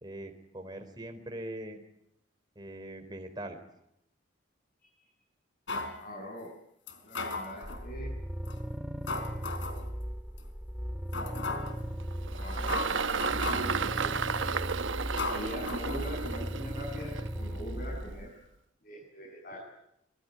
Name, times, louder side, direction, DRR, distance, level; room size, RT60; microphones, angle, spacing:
voice 1, 0.0-1.8 2.6-3.6, right 1 dB, 20° right, 5 dB, 3.6 m, -41 dB
sound 1, 5.7-6.0 6.9-7.8 8.4-8.6 9.1-9.9 10.4-10.5 11.1-11.8 12.4-12.5 12.7-13.8 14.4-14.6 15.2-16.4 16.7-16.8, left 3 dB, 70° left, 4.3 m, -36 dB
voice 2, 6.0-6.5 7.0-8.1 12.3-14.7 15.2-18.4 18.8-19.6, equal, 45° left, -1 dB, 7.5 m, -43 dB
sound 2, 7.6-18.3, equal, 5° right, 1.2 m, -38 dB
Engine, 11.7-18.3, right 5 dB, 80° right, 1.0 m, -34 dB
25.0 x 22.5 x 9.4 m, 0.80 s
head